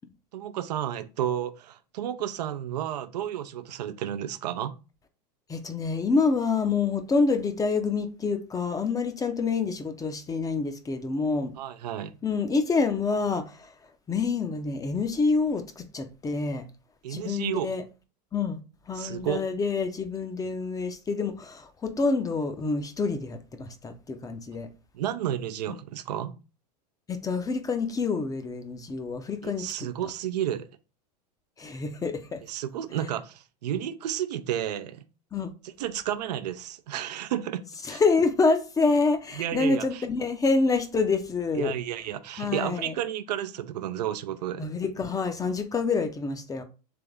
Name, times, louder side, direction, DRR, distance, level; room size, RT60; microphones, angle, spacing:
voice 1, 0.3-4.8 11.6-12.1 17.0-17.7 18.9-19.4 24.9-26.4 29.4-30.7 32.5-35.0 35.8-38.0 39.4-40.0 41.5-44.7, right 11 dB, 75° right, 0.5 m, -32 dB
voice 2, 5.5-11.5 12.2-13.7 14.1-16.6 17.1-17.8 18.3-18.6 18.9-24.7 27.1-29.9 31.6-32.4 35.3-35.5 37.8-41.7 42.4-42.9 44.6-46.6, left 4 dB, 15° left, 0.6 m, -27 dB
3.4 x 3.3 x 3.6 m
hypercardioid pair, 100°, 21 cm